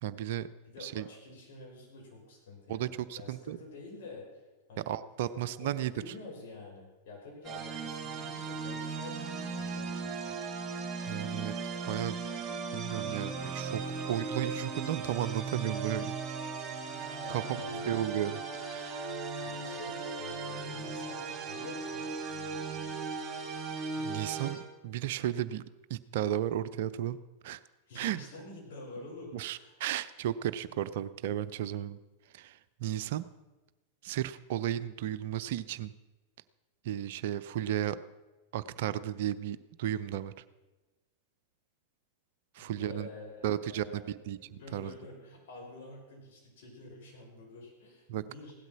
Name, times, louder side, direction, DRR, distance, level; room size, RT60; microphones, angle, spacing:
voice 1, 0.0-0.5 0.8-1.1 2.7-3.6 4.9-6.1 11.1-11.5 11.8-12.2 12.7-13.8 14.1-16.1 17.3-19.1 24.0-25.6 25.9-27.2 27.4-27.6 27.9-28.2 29.3-32.0 32.2-33.2 34.0-35.9 36.8-38.0 38.5-40.3 42.5-43.1 43.4-44.9 48.1-48.2, right 11 dB, 55° right, 14 dB, 0.5 m, -34 dB
voice 2, 0.7-4.4 4.7-4.9 5.3-10.4 17.2-18.0 19.4-23.1 27.9-29.8 42.6-44.1 44.4-48.5, left 2 dB, 55° left, -2 dB, 5.9 m, -48 dB
sound 1, 7.4-24.5, right 4 dB, 20° right, 4.0 m, -37 dB
16.5 x 12.0 x 6.0 m, 1.1 s
figure-of-eight pair, 90°, 0 cm